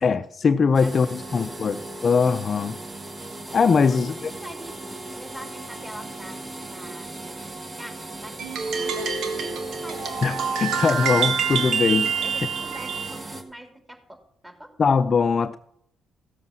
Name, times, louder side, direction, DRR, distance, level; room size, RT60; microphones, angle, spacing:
voice 1, 0.0-2.8 3.5-4.3 10.2-12.1 14.8-15.6, left 5 dB, 50° left, 0.6 m, -21 dB
sound 1, 0.7-13.4, right 2 dB, 35° right, 2.1 m, -38 dB
voice 2, 0.8-1.5 3.9-7.5 7.8-10.1 12.2-14.7, right 1 dB, 15° right, 3.3 m, -44 dB
sound 2, 8.4-13.1, right 6 dB, 75° right, 1.6 m, -26 dB
15.5 x 7.5 x 6.1 m
supercardioid pair, 60°, 0 cm